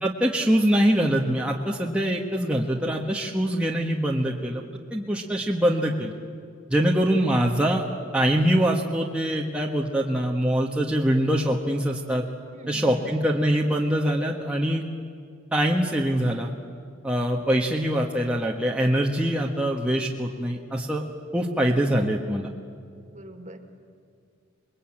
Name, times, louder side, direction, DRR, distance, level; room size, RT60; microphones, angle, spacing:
voice 1, 0.0-4.6 4.9-6.1 6.7-7.8 8.1-12.2 12.7-14.8 15.5-16.5 17.0-21.0 21.3-22.5, equal, 5° right, -1 dB, 1.4 m, -23 dB
voice 2, 12.4-13.1 17.3-17.4 23.1-23.6, right 1 dB, 35° right, 5 dB, 2.2 m, -44 dB
27.0 x 22.0 x 8.8 m, 2.3 s
head